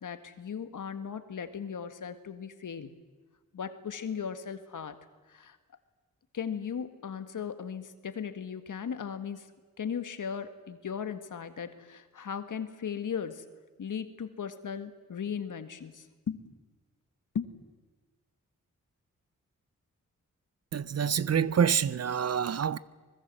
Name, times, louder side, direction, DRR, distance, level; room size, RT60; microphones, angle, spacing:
voice 1, 0.0-2.9 3.5-5.0 5.3-5.6 6.3-9.5 9.8-13.4 13.8-16.4 17.3-17.6, left 7 dB, 70° left, 1.8 m, -37 dB
voice 2, 20.7-22.8, right 7 dB, 50° right, 0.7 m, -27 dB
24.5 x 21.0 x 7.7 m
cardioid pair, 70°, 32 cm